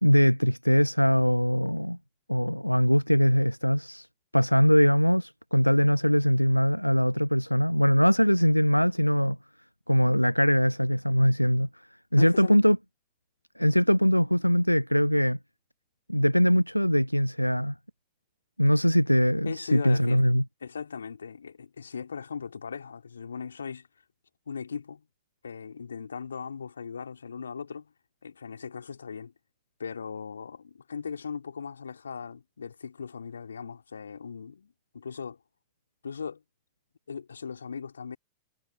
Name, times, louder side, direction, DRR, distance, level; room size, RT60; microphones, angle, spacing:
voice 1, 0.0-2.0 2.3-4.1 4.3-9.4 9.9-11.7 12.1-12.8 13.6-15.4 16.1-17.7 18.6-20.4, equal, 90° left, 0.7 m, -22 dB
voice 2, 12.2-12.6 19.4-20.3 20.6-23.9 24.5-25.1 25.4-27.9 28.2-29.3 29.8-35.4 36.0-36.4 37.1-38.2, left 6 dB, 70° left, 3.5 m, -38 dB
figure-of-eight pair, 90°, 0 cm